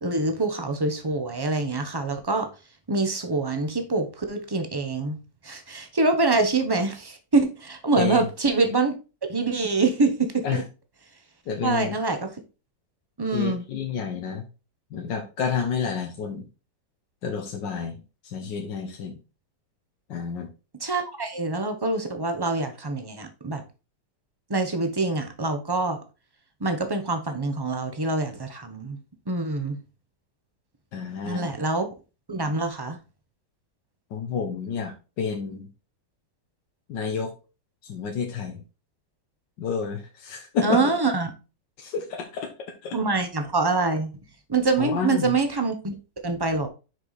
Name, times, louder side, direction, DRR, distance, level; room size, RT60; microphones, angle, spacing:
voice 1, 0.0-2.5 2.9-5.2 5.4-8.9 9.3-10.6 11.6-12.3 13.2-13.6 20.8-23.6 24.5-26.0 26.6-29.0 29.3-29.8 31.2-31.9 32.3-33.0 40.6-41.3 42.9-44.1 44.5-45.9 46.2-46.7, right 3 dB, 20° right, 0.7 m, -25 dB
voice 2, 7.9-8.3 10.4-10.6 11.5-11.9 13.3-14.5 14.9-16.5 17.2-18.0 18.2-19.2 20.1-20.5 30.9-31.5 34.1-35.7 36.9-37.3 37.8-38.6 39.6-40.8 41.8-43.0 44.8-45.4, left 6 dB, 90° left, 1.7 m, -29 dB
6.5 x 4.9 x 4.1 m
omnidirectional pair, 1.9 m